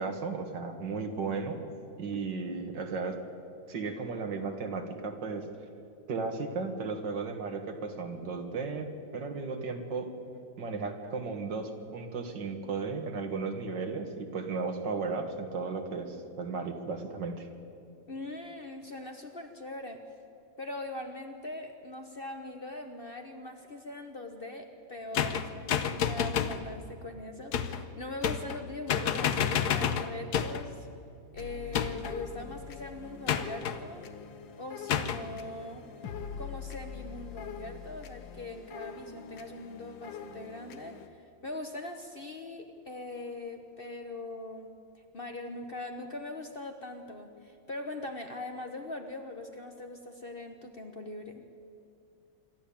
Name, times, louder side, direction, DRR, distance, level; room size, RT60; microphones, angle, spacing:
voice 1, 0.0-1.6 2.0-3.2 3.7-5.5 6.1-10.1 10.6-17.5, right 4 dB, 70° right, 6 dB, 2.3 m, -35 dB
voice 2, 18.1-20.0 20.6-30.9 31.3-34.1 34.6-35.9 36.4-44.7 45.1-51.4, left 2 dB, 35° left, 5 dB, 1.1 m, -41 dB
sound 1, 25.1-26.6 27.5-27.8 28.2-28.6 28.9-30.7 31.7-32.2 33.3-33.8 34.9-35.2, left 8 dB, 65° left, 1.3 m, -29 dB
sound 2, 31.4-41.1, left 7 dB, 85° left, 1.8 m, -44 dB
26.5 x 12.5 x 8.6 m, 2.5 s
omnidirectional pair, 2.0 m